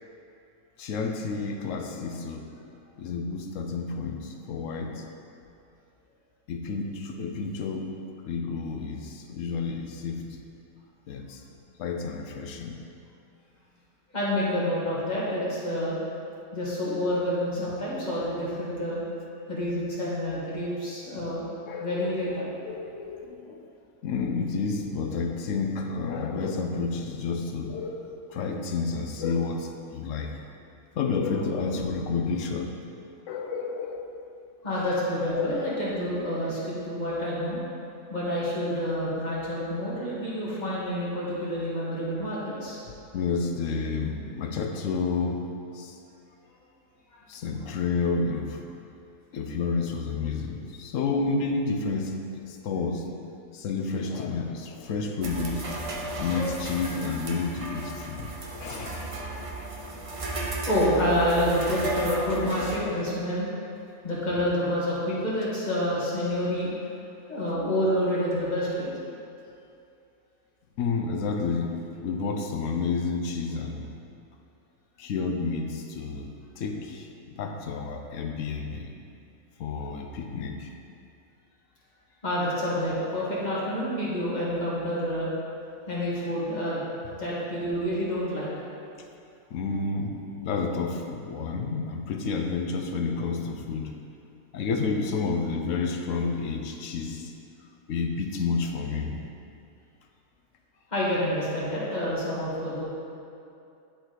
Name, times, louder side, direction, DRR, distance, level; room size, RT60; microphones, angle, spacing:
voice 1, 0.8-2.5 3.0-5.1 6.5-7.9 8.2-10.4 11.1-11.4 11.8-12.8 17.6-17.7 21.7-22.1 22.6-23.7 24.0-30.3 31.0-32.7 33.3-34.1 34.7-34.9 35.3-35.7 42.8-45.5 45.7-46.0 47.3-48.6 49.3-53.1 53.5-55.7 56.1-59.3 70.8-73.9 75.0-78.9 79.6-80.7 89.5-93.9 94.5-97.3 97.9-99.2, left 4 dB, 70° left, 3 dB, 1.0 m, -30 dB
voice 2, 14.1-16.0 16.5-19.0 19.5-21.4 21.8-22.4 34.6-37.6 38.1-42.8 60.7-63.5 64.0-66.7 67.3-68.9 82.2-85.3 85.9-86.8 87.2-88.5 100.9-102.8, equal, 30° left, -7 dB, 1.7 m, -28 dB
sound 1, 55.2-62.8, right 2 dB, 40° right, 0.4 m, -34 dB
10.5 x 4.2 x 3.8 m, 2.6 s
omnidirectional pair, 1.5 m